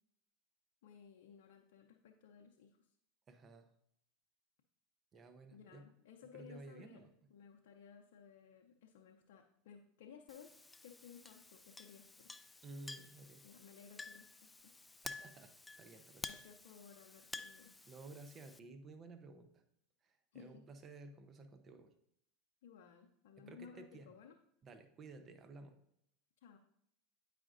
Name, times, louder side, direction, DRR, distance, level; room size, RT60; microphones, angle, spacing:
voice 1, 0.8-2.9 5.1-5.2 5.5-10.5 10.8-12.3 13.4-14.7 16.2-17.7 20.3-20.6 22.6-24.4 26.4-26.6, left 7 dB, 75° left, 1 dB, 0.6 m, -58 dB
voice 2, 3.3-3.7 5.1-5.9 6.3-7.1 12.6-13.4 15.0-16.3 17.9-19.6 20.0-21.9 23.4-24.1 24.6-25.8, right 3 dB, 35° right, 8 dB, 0.7 m, -54 dB
Chink clink, 10.3-18.6, left 2 dB, 10° left, 0.3 m, -52 dB
8.8 x 5.0 x 2.5 m, 0.74 s
hypercardioid pair, 100°, 0 cm